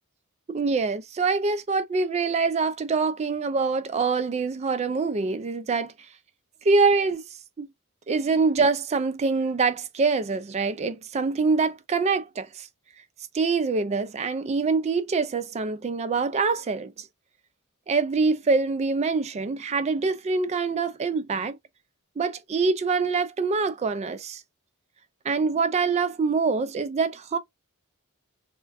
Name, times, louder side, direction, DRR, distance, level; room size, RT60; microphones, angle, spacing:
voice 1, 0.5-5.9 6.6-7.2 7.6-7.7 8.1-12.7 13.3-17.1 17.9-21.6 22.2-24.4 25.2-27.4, right 4 dB, 30° right, 0.3 m, -25 dB
2.4 x 2.2 x 3.4 m
head